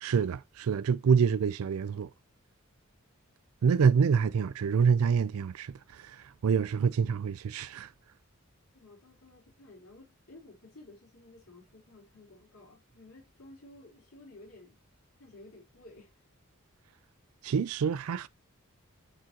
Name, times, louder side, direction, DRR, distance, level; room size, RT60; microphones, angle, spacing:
voice 1, 0.0-2.1 3.6-7.9 17.4-18.3, right 6 dB, 75° right, 0.4 m, -26 dB
voice 2, 8.7-14.8 15.2-16.1, left 2 dB, 85° left, 3.6 m, -54 dB
8.9 x 3.8 x 2.8 m
head